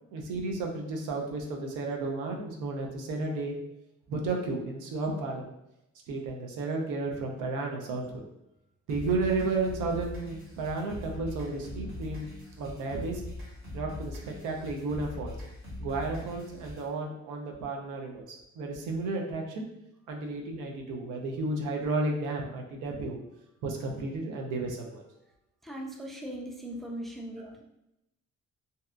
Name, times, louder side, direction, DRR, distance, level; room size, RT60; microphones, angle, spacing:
voice 1, 0.1-3.6 4.1-5.5 6.1-8.2 8.9-13.2 13.7-15.3 15.8-19.6 20.1-23.2 23.6-25.0 27.4-27.5, right 3 dB, 90° right, 1 dB, 0.6 m, -33 dB
sound 1, 8.9-16.9, left 2 dB, 45° right, 1.2 m, -41 dB
voice 2, 25.6-27.6, right 1 dB, ahead, 0 dB, 0.4 m, -39 dB
2.7 x 2.2 x 2.4 m, 0.86 s
cardioid pair, 90°, 30 cm